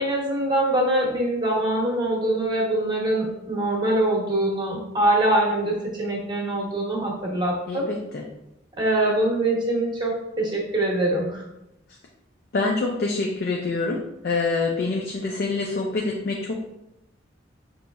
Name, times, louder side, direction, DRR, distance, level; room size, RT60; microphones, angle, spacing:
voice 1, 0.0-7.9 8.8-11.4, right 1 dB, 25° right, -2 dB, 0.9 m, -23 dB
voice 2, 7.7-8.2 12.5-14.0 14.2-16.7, left 3 dB, 55° left, 0 dB, 0.4 m, -26 dB
5.0 x 3.0 x 2.3 m, 0.87 s
head